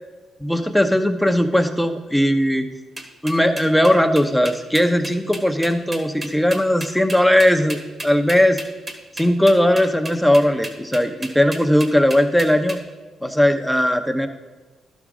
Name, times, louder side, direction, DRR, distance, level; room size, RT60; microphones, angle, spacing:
voice 1, 0.4-2.7 3.2-8.6 9.2-12.8 13.2-14.3, equal, ahead, 6 dB, 0.8 m, -18 dB
sound 1, 3.0-12.8, right 1 dB, 35° right, 1.3 m, -33 dB
12.0 x 6.0 x 3.8 m, 1.3 s
supercardioid pair, 65°, 0 cm